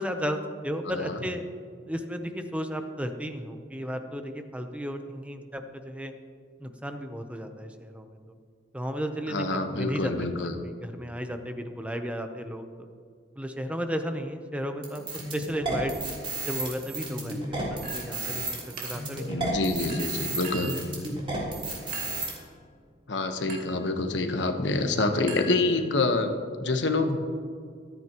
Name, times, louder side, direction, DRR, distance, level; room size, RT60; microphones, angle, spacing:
voice 1, 0.0-1.4 1.9-6.1 6.6-8.4 8.7-10.1 10.4-12.9 13.4-15.0 15.3-15.9 16.5-19.5 20.6-20.7, equal, 5° right, 6 dB, 0.7 m, -34 dB
voice 2, 0.9-1.2 9.3-10.6 19.3-20.7 23.1-27.2, left 2 dB, 85° left, 6 dB, 1.1 m, -27 dB
sound 1, 14.8-22.3, right 3 dB, 30° right, 3.5 m, -33 dB
Chink clink, 17.8-18.3 18.8-19.2 19.9-20.9 21.9-22.3 23.5-23.8 25.3-26.1, right 2 dB, 50° right, 1.8 m, -41 dB
26.0 x 9.4 x 3.0 m, 2.1 s
head